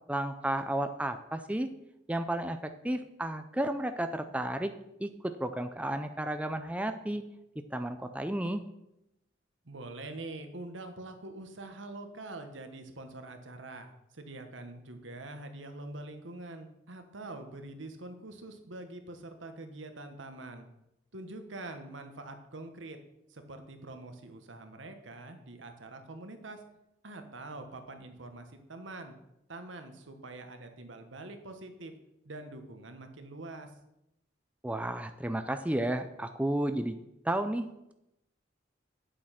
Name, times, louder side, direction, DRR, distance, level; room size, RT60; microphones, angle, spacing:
voice 1, 0.1-1.7 2.1-4.7 5.0-7.2 7.7-8.6 34.6-37.0 37.2-37.9, right 1 dB, 5° right, 7 dB, 0.5 m, -32 dB
voice 2, 9.6-20.7 21.1-23.0 23.3-26.6 27.0-29.1 29.5-31.9 32.2-33.7, right 2 dB, 75° right, 7 dB, 1.3 m, -45 dB
8.8 x 7.7 x 5.8 m, 0.85 s
head